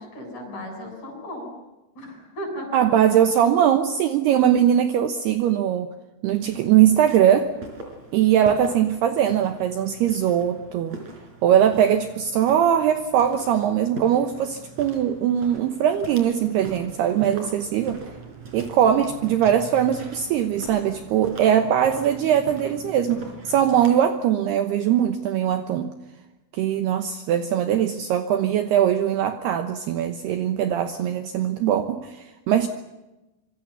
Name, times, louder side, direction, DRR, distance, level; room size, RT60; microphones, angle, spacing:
voice 1, 0.0-1.6 1.9-2.8, equal, 35° left, 3 dB, 8.4 m, -35 dB
voice 2, 2.7-5.9 6.2-7.5 8.1-11.0 11.4-18.0 18.5-25.9 26.5-32.7, right 10 dB, 70° right, 8 dB, 2.7 m, -21 dB
Walk footsteps, 6.4-24.1, right 3 dB, 35° right, 5.2 m, -41 dB
26.5 x 24.0 x 7.0 m, 1.0 s
omnidirectional pair, 5.5 m